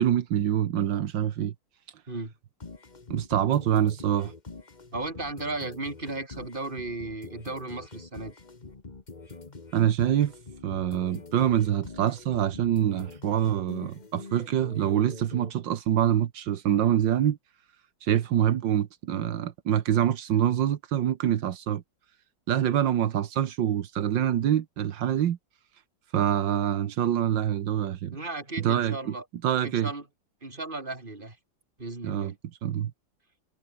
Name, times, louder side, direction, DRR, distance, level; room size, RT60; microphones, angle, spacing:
voice 1, 0.0-1.5 3.1-4.3 9.7-10.3 10.6-17.4 18.0-21.8 22.5-25.4 26.1-28.2 28.6-29.1 29.4-29.9 32.0-32.3 32.6-32.9, right 10 dB, 80° right, 1.8 m, -25 dB
sound 1, 2.6-15.5, left 3 dB, 25° left, 1.7 m, -45 dB
voice 2, 4.9-8.4 28.1-29.2 29.6-30.0 30.4-31.4 31.8-32.3, right 2 dB, 25° right, 3.8 m, -35 dB
omnidirectional pair, 2.0 m